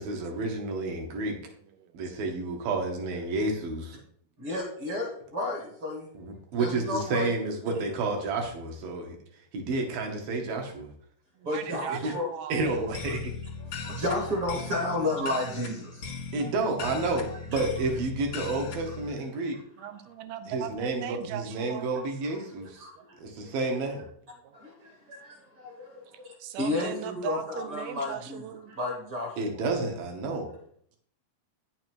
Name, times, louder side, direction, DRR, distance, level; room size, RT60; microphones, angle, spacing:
voice 1, 0.0-1.4 1.9-4.0 6.1-9.2 9.5-10.9 11.9-12.1 12.5-13.3 16.3-19.6 20.5-22.9 23.2-24.0 29.4-30.5, right 3 dB, 70° right, 2 dB, 3.1 m, -30 dB
voice 2, 1.0-2.0 3.4-3.5 4.0-4.1 11.4-12.7 13.9-14.0 19.5-21.9 23.0-23.1 24.4-24.6 26.1-28.7, right 10 dB, 90° right, 11 dB, 2.7 m, -39 dB
voice 3, 4.4-6.1 6.5-7.3 11.4-12.3 13.6-16.5 17.3-17.6 22.6-23.5 24.5-29.6, left 2 dB, 45° right, 1 dB, 2.1 m, -33 dB
sound 1, 12.7-19.1, left 5 dB, 65° left, 1.2 m, -38 dB
9.6 x 6.5 x 4.6 m, 0.63 s
omnidirectional pair, 4.3 m